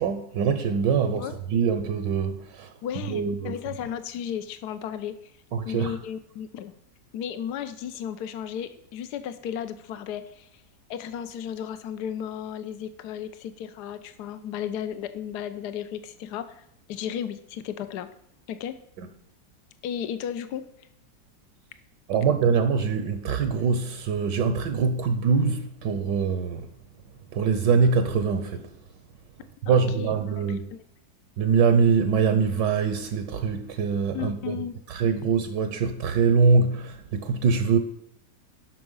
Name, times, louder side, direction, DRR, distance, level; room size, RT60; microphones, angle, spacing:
voice 1, 0.0-2.7 3.1-3.5 5.5-5.9 22.1-26.7 27.3-28.7 29.7-30.6 31.4-34.6 34.9-37.8, right 5 dB, 75° right, 1.5 m, -23 dB
voice 2, 2.8-5.1 5.6-6.7 7.1-10.5 10.9-16.6 16.9-18.1 18.5-18.8 19.8-20.7 29.7-30.1 30.5-30.8 34.1-34.8, left 9 dB, 70° left, 1.3 m, -34 dB
12.0 x 6.0 x 5.5 m
omnidirectional pair, 1.9 m